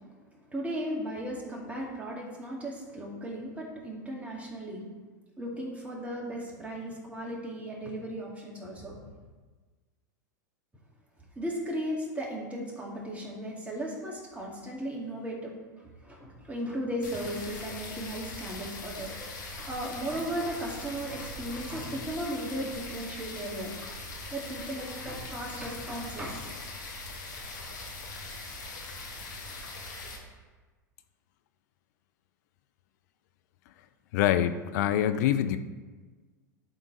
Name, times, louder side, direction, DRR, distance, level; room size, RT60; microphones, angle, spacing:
voice 1, 0.5-4.8 5.4-9.1 11.4-15.5 15.8-23.7 24.3-26.4, right 1 dB, 15° right, -3 dB, 2.3 m, -36 dB
sound 1, 17.0-30.2, left 2 dB, 75° left, 1.9 m, -41 dB
voice 2, 34.1-35.6, left 11 dB, 60° left, 11 dB, 0.6 m, -25 dB
11.0 x 3.9 x 4.6 m, 1.3 s
hypercardioid pair, 100°, 10 cm